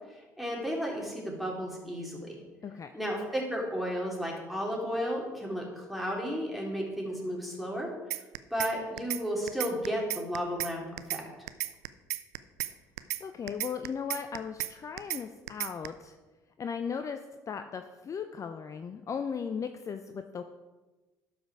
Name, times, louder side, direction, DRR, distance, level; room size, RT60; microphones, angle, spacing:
voice 1, 0.1-2.4 2.9-7.9 8.5-11.2, equal, ahead, -2 dB, 3.2 m, -33 dB
sound 1, 8.1-8.7 9.0-9.2 9.5-10.7 11.0-11.2 11.5-12.7 13.0-13.2 13.5-14.7 15.0-15.2 15.5-15.9, right 16 dB, 80° right, 0.4 m, -33 dB
voice 2, 13.2-16.2 16.6-17.2 17.5-20.4, left 6 dB, 40° left, 8 dB, 0.6 m, -37 dB
12.0 x 5.2 x 4.8 m, 1.2 s
hypercardioid pair, 55°, 9 cm